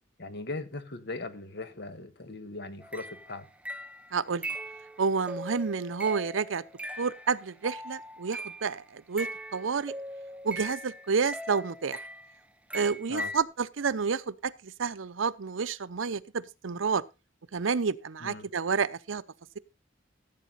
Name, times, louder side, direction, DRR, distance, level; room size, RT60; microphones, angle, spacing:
voice 1, 0.2-3.5 13.1-13.3 18.2-18.5, left 2 dB, 60° left, 1.5 m, -39 dB
sound 1, 2.8-8.7 9.2-12.4 12.7-13.4, right 1 dB, 5° right, 0.6 m, -40 dB
voice 2, 4.1-4.5 5.0-6.6 7.0-9.9 10.4-12.0 12.7-17.0 17.5-19.2, right 5 dB, 85° right, 0.7 m, -30 dB
15.5 x 8.3 x 4.0 m
head